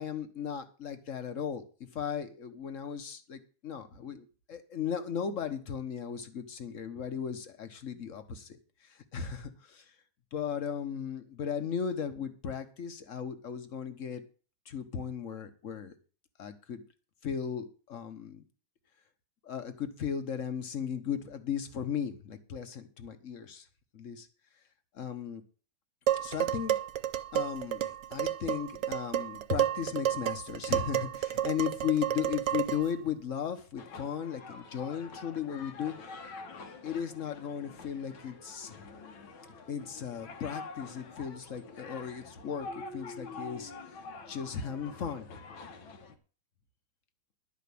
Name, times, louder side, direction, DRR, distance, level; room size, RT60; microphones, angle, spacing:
voice 1, 0.0-9.9 10.3-14.2 14.7-15.9 16.4-16.8 17.2-18.4 19.4-23.6 23.9-24.3 24.9-25.4 26.2-26.7 27.3-35.9 36.8-38.7 39.7-44.0 44.3-45.3, left 8 dB, 45° left, 9 dB, 1.3 m, -36 dB
Dishes pots and pans, 26.1-32.9, right 11 dB, 70° right, 1.2 m, -31 dB
sound 1, 33.8-46.2, left 3 dB, 80° left, 1.9 m, -46 dB
11.5 x 5.2 x 8.5 m, 0.39 s
omnidirectional pair, 2.2 m